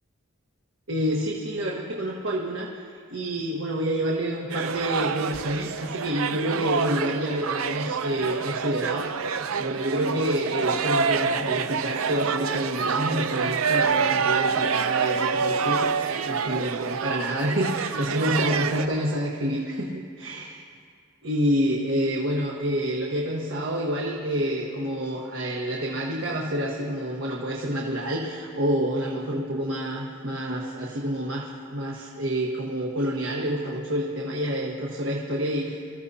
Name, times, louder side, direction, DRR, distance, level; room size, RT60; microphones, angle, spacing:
voice 1, 0.9-2.7 3.1-19.9 20.2-20.6 21.2-35.8, equal, 70° right, -2 dB, 1.4 m, -28 dB
sound 1, 4.5-18.9, right 6 dB, 90° right, 0.6 m, -27 dB
27.0 x 14.5 x 2.8 m, 2.1 s
head